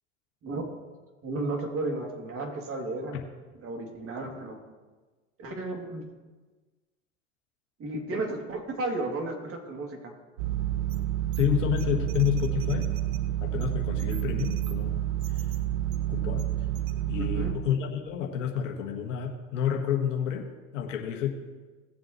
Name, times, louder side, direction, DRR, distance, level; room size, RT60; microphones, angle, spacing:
voice 1, 1.2-3.2 3.6-4.6 5.4-6.1 7.8-10.1 17.2-17.6, right 2 dB, 35° right, 1 dB, 2.7 m, -33 dB
sound 1, 10.4-17.5, right 13 dB, 75° right, 1.0 m, -29 dB
voice 2, 11.4-13.0 13.4-15.0 15.3-15.5 16.1-16.5 17.1-21.3, left 10 dB, 75° left, 1 dB, 1.6 m, -29 dB
18.5 x 7.6 x 3.1 m, 1.3 s
hypercardioid pair, 80°, 38 cm